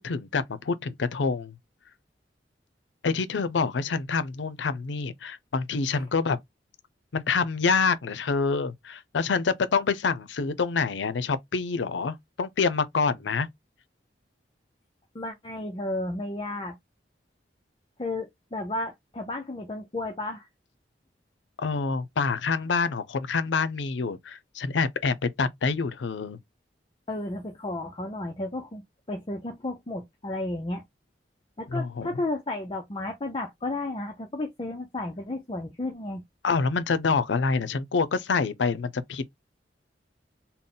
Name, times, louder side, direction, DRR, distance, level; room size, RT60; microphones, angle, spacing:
voice 1, 0.0-1.5 3.0-6.4 7.1-13.5 21.6-26.4 31.7-32.1 36.4-39.3, left 4 dB, 90° left, 0.5 m, -27 dB
voice 2, 15.1-16.8 18.0-20.5 27.1-28.8 29.1-30.8 31.6-36.2, left 2 dB, 30° left, 0.6 m, -33 dB
3.9 x 2.1 x 3.8 m
head